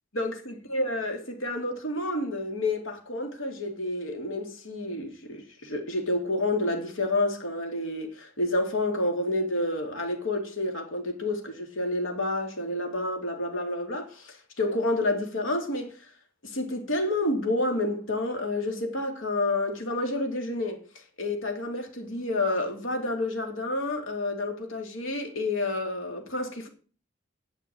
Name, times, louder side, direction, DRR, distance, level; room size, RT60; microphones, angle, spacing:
voice 1, 0.2-16.0 16.4-20.8 21.2-26.7, left 2 dB, 85° left, 2.4 m, -29 dB
9.7 x 6.7 x 8.5 m
head